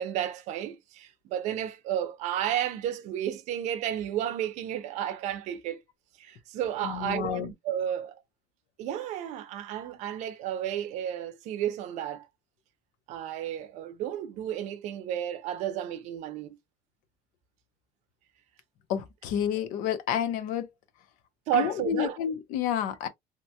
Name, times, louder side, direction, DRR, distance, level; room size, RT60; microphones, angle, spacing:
voice 1, 0.0-5.8 6.2-8.2 8.8-12.3 13.1-16.6 21.5-22.2, right 10 dB, 60° right, 0.5 m, -32 dB
voice 2, 6.8-7.5 18.9-20.7 21.5-23.1, left 9 dB, 90° left, 0.7 m, -30 dB
2.8 x 2.2 x 2.7 m
cardioid pair, 180°, 13 cm